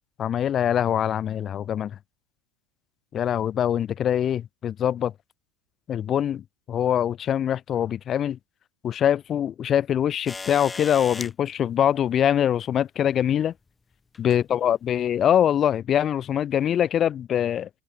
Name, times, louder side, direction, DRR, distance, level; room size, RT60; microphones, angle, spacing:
voice 1, 0.2-2.0 3.1-5.1 5.9-8.4 8.8-13.5 14.2-17.7, left 10 dB, 30° left, 0.4 m, -23 dB
sound 1, 10.3-11.3 12.7-12.8 14.1-14.4 15.3-15.4, left 4 dB, 15° left, 2.1 m, -36 dB
supercardioid pair, 140°, 0 cm